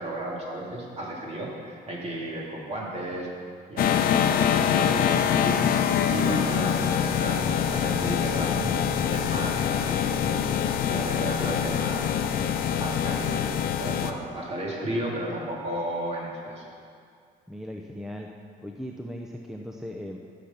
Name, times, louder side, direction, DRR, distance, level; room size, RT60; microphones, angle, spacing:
voice 1, 0.0-3.3 3.7-8.7 9.1-10.5 10.9-12.1 12.8-13.4 13.8-16.6, right 1 dB, 40° right, -3 dB, 3.0 m, -33 dB
sound 1, 3.8-14.1, left 8 dB, 60° left, 0.7 m, -24 dB
voice 2, 17.5-18.3 18.6-20.2, equal, ahead, 1 dB, 0.6 m, -38 dB
14.0 x 6.6 x 5.7 m, 2.2 s
cardioid pair, 110°, 17 cm